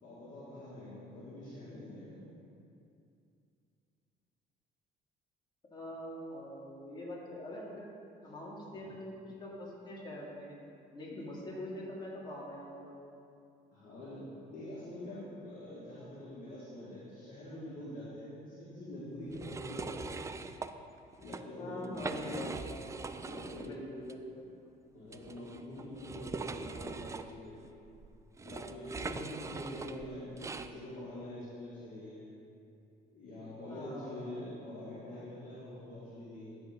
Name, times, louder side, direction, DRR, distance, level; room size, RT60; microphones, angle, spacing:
voice 1, 0.0-2.3 13.7-20.1 21.2-22.1 23.2-23.8 24.9-27.6 28.4-32.3 33.1-36.6, left 1 dB, 55° left, -10 dB, 2.2 m, -45 dB
voice 2, 1.6-2.0 5.7-7.9 8.2-10.5 10.9-13.0 17.5-17.6 18.9-19.0 21.6-22.5 23.0-24.5 25.8-26.2 29.0-30.0 33.7-34.3, left 1 dB, 25° left, -5 dB, 2.4 m, -44 dB
sound 1, 19.3-20.7 21.1-21.4 21.8-23.7 24.0-24.1 25.1-30.7, right 4 dB, 20° right, 0.3 m, -42 dB
12.5 x 4.4 x 5.1 m, 2.5 s
cardioid pair, 110°, 17 cm